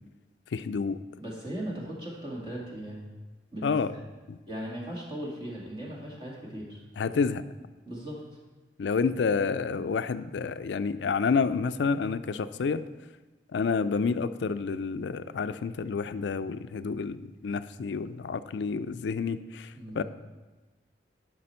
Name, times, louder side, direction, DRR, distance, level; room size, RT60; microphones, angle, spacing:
voice 1, 0.5-1.0 3.6-3.9 4.3-4.4 7.0-7.4 8.8-12.8 13.5-19.7 19.9-20.0, left 5 dB, 80° left, 13 dB, 0.4 m, -29 dB
voice 2, 1.2-3.0 3.5-4.0 4.5-6.8 7.8-8.2 19.7-20.0, equal, 25° right, -3 dB, 1.9 m, -38 dB
11.0 x 5.9 x 4.4 m, 1.2 s
head